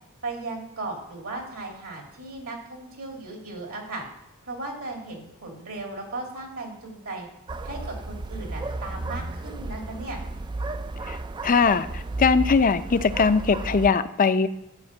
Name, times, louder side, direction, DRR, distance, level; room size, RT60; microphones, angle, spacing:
voice 1, 0.2-4.0 4.4-7.3 7.6-10.2, right 2 dB, 75° right, 1 dB, 2.6 m, -36 dB
sound 1, 7.5-13.9, right 2 dB, 20° right, 0.3 m, -33 dB
voice 2, 11.4-14.5, left 5 dB, 40° left, 12 dB, 0.5 m, -21 dB
12.5 x 5.2 x 7.4 m, 0.85 s
head